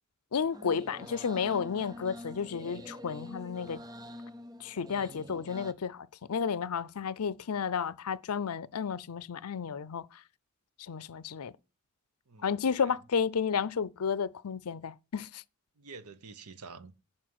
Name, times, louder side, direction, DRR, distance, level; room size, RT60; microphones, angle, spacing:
voice 1, 0.3-3.8 4.6-10.0 10.9-11.5 12.4-15.4, left 6 dB, 85° left, 0.5 m, -32 dB
sound 1, 0.5-5.7, equal, 20° right, 0.6 m, -46 dB
voice 2, 5.0-5.4 12.3-13.0 15.8-16.9, right 4 dB, 85° right, 1.0 m, -49 dB
11.5 x 4.3 x 7.7 m
head